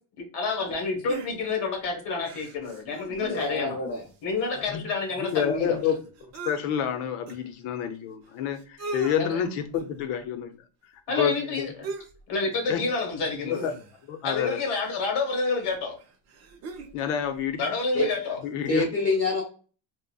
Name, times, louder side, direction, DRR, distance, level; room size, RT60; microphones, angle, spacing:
voice 1, 0.2-3.8 4.2-5.8 9.2-9.4 11.1-11.9 12.3-13.7 14.2-16.0 17.6-18.4, left 3 dB, 55° left, 3 dB, 1.2 m, -29 dB
sound 1, 1.1-1.7 2.2-3.7 4.0-4.1 4.3-6.6 7.3-7.4 8.3-8.4 8.6-9.2 9.7-10.0 11.8-12.2 12.5-12.7 13.5-14.2 15.3-15.4 16.0-17.0 17.3-17.4, right 4 dB, 35° right, 0.4 m, -40 dB
voice 2, 3.2-4.0 17.9-18.1 18.7-19.4, left 3 dB, 30° left, -3 dB, 0.7 m, -26 dB
voice 3, 5.2-6.0 6.4-10.5 11.2-11.7 12.7-12.8 13.4-13.7 14.1-14.6 16.9-17.6 18.4-18.9, left 8 dB, 80° left, 8 dB, 0.7 m, -28 dB
3.8 x 2.1 x 2.2 m, 0.38 s
cardioid pair, 175°, 49 cm